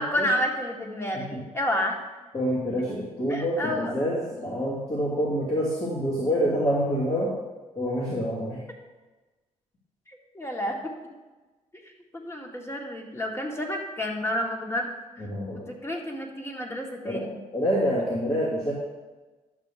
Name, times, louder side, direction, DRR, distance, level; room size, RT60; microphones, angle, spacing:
voice 1, 0.0-2.0 3.3-3.9 10.1-10.9 11.8-15.2 15.7-17.4, equal, 20° left, 1 dB, 1.8 m, -30 dB
voice 2, 2.3-7.3 7.7-8.6 15.2-15.7 17.0-17.2 17.5-18.7, equal, 45° left, -7 dB, 2.7 m, -27 dB
11.5 x 7.0 x 3.6 m, 1.2 s
cardioid pair, 70°, 14 cm